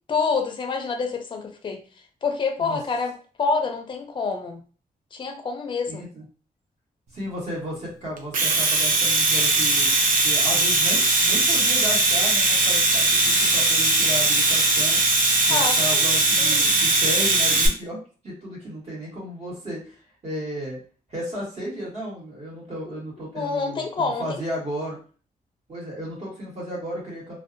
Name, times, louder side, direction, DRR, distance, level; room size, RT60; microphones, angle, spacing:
voice 1, 0.1-1.8 2.2-3.1 3.4-4.6 5.1-6.0 15.5-16.1 16.4-16.8 23.3-24.4, left 4 dB, 30° left, 4 dB, 0.4 m, -27 dB
voice 2, 5.9-6.2 7.1-9.9 10.2-15.0 15.5-18.0 18.2-20.8 21.1-25.0 25.7-27.4, equal, 45° right, -5 dB, 1.4 m, -34 dB
Domestic sounds home sounds, 8.2-17.7, right 2 dB, 60° right, 0.5 m, -20 dB
2.6 x 2.2 x 2.5 m, 0.38 s
wide cardioid pair, 160°, 15 cm